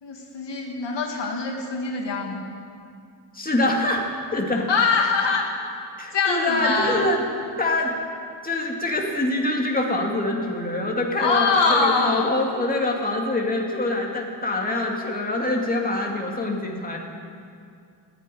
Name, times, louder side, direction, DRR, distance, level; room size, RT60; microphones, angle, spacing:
voice 1, 0.0-2.4 4.7-5.5 6.1-7.1 11.2-12.3, left 4 dB, 75° left, 0 dB, 2.2 m, -23 dB
voice 2, 3.3-4.7 6.0-7.2 7.6-7.9 8.4-17.0, left 2 dB, 20° left, -1 dB, 2.3 m, -25 dB
14.5 x 9.6 x 9.9 m, 2.3 s
wide cardioid pair, 100°, 43 cm